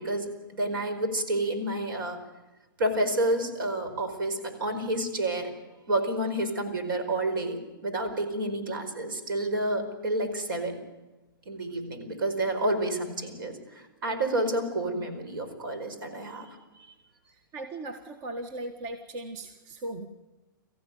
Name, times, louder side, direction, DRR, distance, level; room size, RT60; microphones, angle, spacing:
voice 1, 0.0-2.2 2.8-5.5 5.9-10.8 11.4-16.6, right 1 dB, 75° right, 7 dB, 4.9 m, -29 dB
voice 2, 17.5-20.1, right 2 dB, 40° right, 7 dB, 1.6 m, -38 dB
23.0 x 15.0 x 9.4 m, 1.1 s
hypercardioid pair, 130°, 11 cm